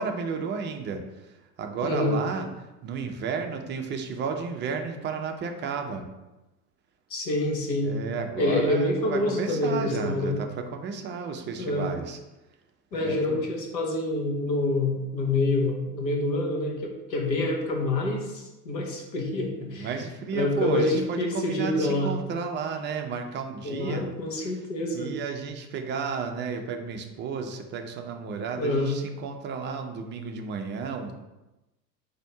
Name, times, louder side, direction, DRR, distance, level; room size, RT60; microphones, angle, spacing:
voice 1, 0.0-2.5 2.8-6.1 7.8-12.2 12.9-13.4 19.8-24.1 24.4-24.6 24.9-31.1, right 5 dB, 25° right, 5 dB, 0.4 m, -32 dB
voice 2, 1.8-2.2 7.1-8.0 8.4-10.4 11.6-11.9 12.9-19.9 20.3-22.1 23.6-25.1 28.6-28.9, left 2 dB, 80° left, 1 dB, 1.1 m, -27 dB
4.1 x 2.8 x 4.5 m, 1.0 s
hypercardioid pair, 80°, 50 cm